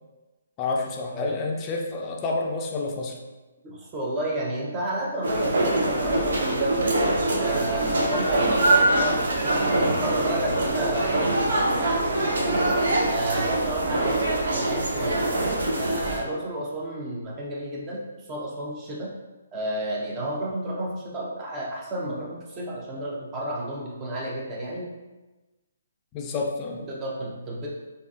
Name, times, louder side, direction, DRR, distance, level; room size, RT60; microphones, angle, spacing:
voice 1, 0.6-3.2 26.1-26.8, left 3 dB, 25° left, 0 dB, 0.5 m, -29 dB
voice 2, 3.6-7.0 7.4-12.6 13.0-15.2 15.8-19.1 19.5-24.9 26.9-27.7, right 1 dB, 20° right, -3 dB, 0.7 m, -31 dB
sound 1, 5.2-16.2, right 2 dB, 70° right, 0.7 m, -24 dB
3.8 x 2.5 x 2.4 m, 1.2 s
hypercardioid pair, 150°, 0 cm